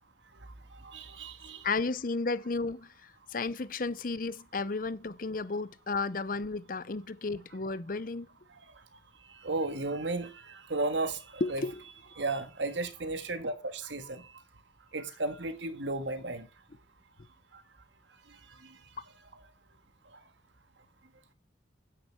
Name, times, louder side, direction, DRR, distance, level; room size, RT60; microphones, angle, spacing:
voice 1, 0.3-1.7 8.5-9.0 9.3-11.6 12.1-14.3 14.9-16.5 17.5-17.6 18.3-18.8 19.3-19.4 20.1-20.2, right 2 dB, 80° right, 1.6 m, -35 dB
voice 2, 1.6-8.3 11.4-11.8, left 3 dB, 50° left, 0.7 m, -33 dB
9.5 x 8.6 x 4.5 m
head